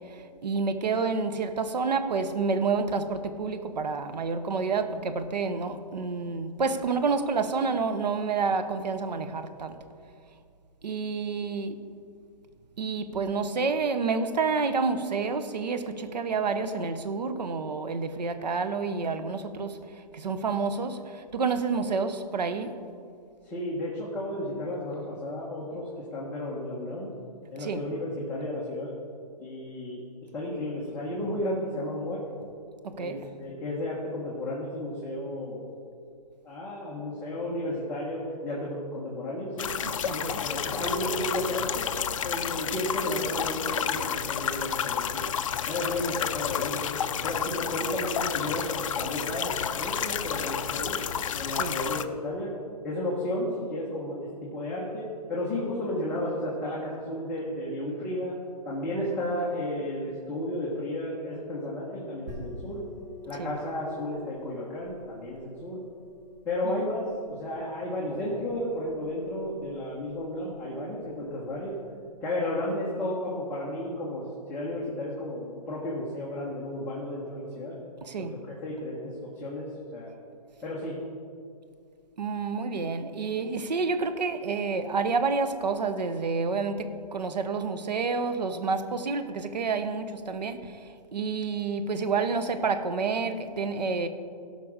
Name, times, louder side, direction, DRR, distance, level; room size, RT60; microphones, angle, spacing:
voice 1, 0.1-9.8 10.8-11.8 12.8-22.7 27.6-27.9 32.8-33.3 39.8-40.5 51.5-51.8 63.3-63.5 66.6-66.8 78.0-78.4 82.2-94.1, right 4 dB, 85° right, 9 dB, 1.1 m, -29 dB
voice 2, 23.4-27.1 27.5-28.9 29.4-30.0 30.3-32.2 33.0-35.6 36.4-39.7 40.1-41.8 42.2-45.2 45.7-51.0 51.3-52.5 52.8-58.3 58.6-62.8 63.3-65.8 66.4-67.0 67.3-71.7 72.2-77.8 78.2-80.1 80.6-81.0, left 1 dB, 10° left, -7 dB, 1.3 m, -33 dB
sound 1, 39.6-52.0, left 8 dB, 50° left, 0.5 m, -31 dB
sound 2, 62.3-71.6, left 2 dB, 30° right, 2.4 m, -48 dB
17.0 x 6.0 x 5.0 m, 2.3 s
hypercardioid pair, 160°, 21 cm